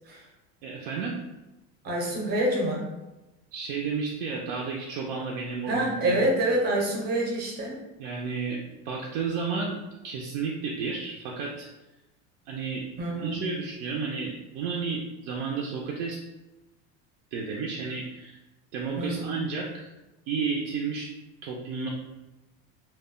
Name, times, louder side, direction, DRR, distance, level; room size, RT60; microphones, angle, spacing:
voice 1, 0.6-1.2 3.5-6.3 8.0-9.8 10.0-11.7 12.5-12.9 13.2-16.2 17.3-18.4 18.7-19.9 20.3-21.1 21.4-21.9, right 5 dB, 80° right, -1 dB, 0.5 m, -32 dB
voice 2, 1.8-2.8 5.7-7.8 13.0-13.4 19.0-19.4, right 1 dB, 30° right, -2 dB, 0.6 m, -26 dB
2.2 x 2.1 x 3.6 m, 1.0 s
cardioid pair, 165°, 33 cm